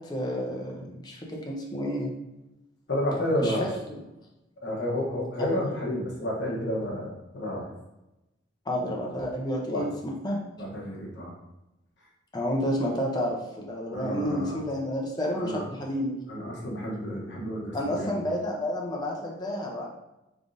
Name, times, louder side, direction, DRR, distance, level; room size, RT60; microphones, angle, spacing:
voice 1, 0.1-1.2 1.5-2.1 3.4-3.7 8.7-9.9 10.2-10.4 12.3-16.2 17.7-19.9, equal, 20° left, -1 dB, 0.6 m, -30 dB
voice 2, 2.9-3.7 4.6-7.7 9.7-9.9 10.6-11.3 13.9-14.6 15.4-15.7 16.3-18.2, left 1 dB, 60° left, -3 dB, 0.9 m, -30 dB
3.6 x 3.5 x 2.6 m, 0.95 s
head